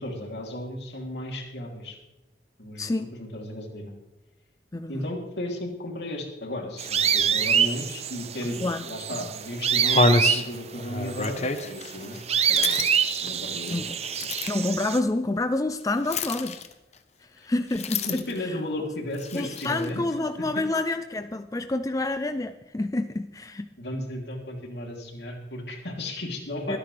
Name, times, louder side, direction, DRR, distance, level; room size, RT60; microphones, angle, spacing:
voice 1, 0.0-2.0 2.6-3.9 4.9-12.2 12.5-12.8 13.2-13.8 14.2-14.3 17.3-17.5 18.0-20.0 20.4-20.5 23.8-26.8, left 1 dB, 75° left, 0 dB, 3.1 m, -34 dB
voice 2, 2.8-3.1 4.7-5.0 8.6-8.8 9.2-9.3 13.7-14.0 14.5-16.6 17.2-18.5 19.3-23.7 26.7-26.8, left 2 dB, 20° left, 9 dB, 0.4 m, -28 dB
sound 1, 6.8-15.0, right 8 dB, 35° right, 0.6 m, -26 dB
sound 2, 8.6-8.7 9.3-9.4 9.8-14.7 16.1-17.0 17.7-18.5 19.1-20.0, left 3 dB, 40° left, 0.9 m, -28 dB
24.5 x 9.8 x 3.4 m, 0.98 s
head